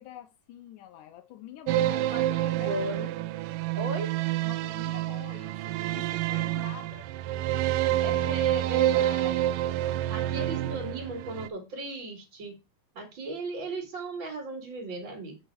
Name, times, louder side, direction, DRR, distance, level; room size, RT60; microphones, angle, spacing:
voice 1, 0.0-2.8 4.4-7.1 9.8-10.5, left 12 dB, 85° left, 9 dB, 2.3 m, -47 dB
sound 1, 1.7-11.5, right 13 dB, 90° right, 2.2 m, -28 dB
voice 2, 1.9-3.1 3.7-4.1 8.0-9.6 10.1-12.6 12.9-15.4, right 2 dB, 40° right, 0 dB, 2.6 m, -37 dB
8.1 x 6.5 x 4.6 m, 0.28 s
omnidirectional pair, 3.7 m